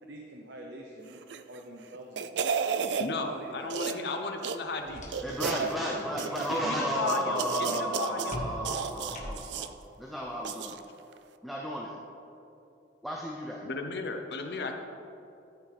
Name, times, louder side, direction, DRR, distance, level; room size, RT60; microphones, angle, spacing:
voice 1, 0.0-2.5 2.9-4.1 5.3-8.1, right 1 dB, 90° right, 0 dB, 0.8 m, -45 dB
sound 1, 1.2-1.6 1.9-3.1 3.7-4.1 4.4-4.6 5.1-5.7 6.2-6.6 7.0-8.4 8.6-9.7 10.4-10.8 11.1-11.2, right 6 dB, 75° right, 0.4 m, -32 dB
voice 2, 3.0-5.2 6.5-8.5 13.6-14.8, left 3 dB, 65° left, 5 dB, 0.8 m, -35 dB
sound 2, 4.5-5.6 5.9-6.2 8.3-9.7, equal, 45° left, 1.6 m, -42 dB
voice 3, 5.2-10.8 11.4-12.0 13.0-13.6, equal, ahead, -3 dB, 0.6 m, -33 dB
13.0 x 5.9 x 3.5 m, 2.8 s
head